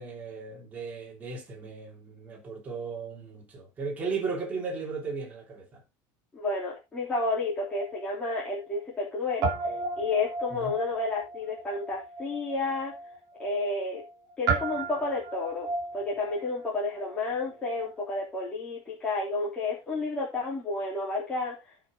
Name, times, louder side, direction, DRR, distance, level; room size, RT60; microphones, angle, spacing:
voice 1, 0.0-5.8 10.5-10.8, right 4 dB, 15° right, 3.0 m, -36 dB
voice 2, 6.3-9.5 10.0-13.0 13.4-14.0 14.4-21.6, left 3 dB, 10° left, 3.4 m, -31 dB
Guitar, 7.3-9.1 9.4-18.0, right 4 dB, 35° right, 3.1 m, -35 dB
14.5 x 5.6 x 3.8 m
cardioid pair, 180°, 10 cm